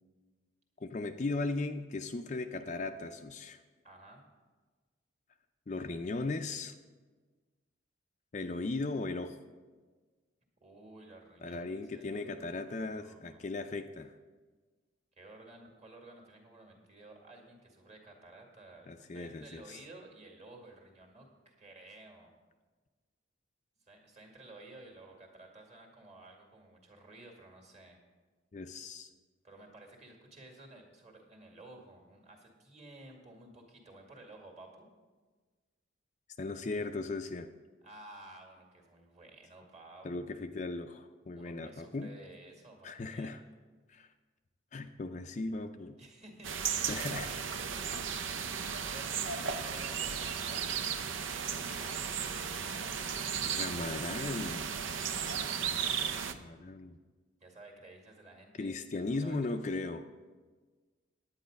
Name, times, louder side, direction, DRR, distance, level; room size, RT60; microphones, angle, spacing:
voice 1, 0.8-3.6 5.7-6.7 8.3-9.4 11.4-14.1 18.9-19.8 28.5-29.1 36.4-37.5 40.0-42.1 42.8-43.4 43.9-44.1 44.7-46.0 46.9-47.3 53.4-54.6 56.3-57.0 58.6-60.0, left 3 dB, 35° left, 6 dB, 0.4 m, -37 dB
voice 2, 3.8-4.2 10.6-13.4 15.2-22.3 23.8-28.0 29.4-34.9 37.8-40.2 41.3-43.3 44.8-45.0 46.0-48.2 48.9-52.8 54.9-55.4 57.4-59.4, right 2 dB, 35° right, 0 dB, 2.0 m, -54 dB
sound 1, 46.4-56.3, right 7 dB, 75° right, 0.6 m, -35 dB
10.0 x 9.0 x 5.2 m, 1.4 s
head